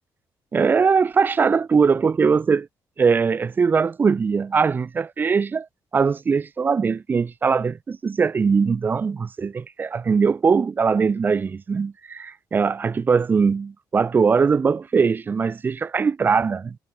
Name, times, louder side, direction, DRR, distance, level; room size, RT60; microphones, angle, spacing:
voice 1, 0.5-2.7 3.0-5.7 5.9-16.8, right 5 dB, 25° right, 0.6 m, -21 dB
wide cardioid pair, 175°, 7 cm